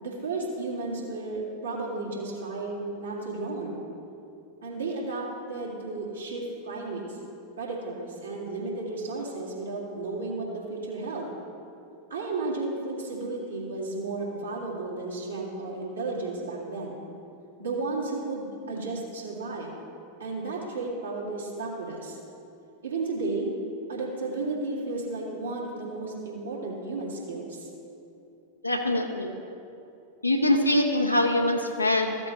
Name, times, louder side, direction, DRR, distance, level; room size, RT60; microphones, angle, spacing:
voice 1, 0.0-3.8 4.6-7.2 7.6-11.3 12.1-17.0 17.6-19.7 20.2-22.2 22.8-23.5 23.9-27.7, right 3 dB, 75° right, -4 dB, 2.2 m, -33 dB
voice 2, 28.6-29.3 30.2-32.2, left 1 dB, 85° left, 3 dB, 0.9 m, -23 dB
14.5 x 7.8 x 3.1 m, 2.7 s
figure-of-eight pair, 90°, 0 cm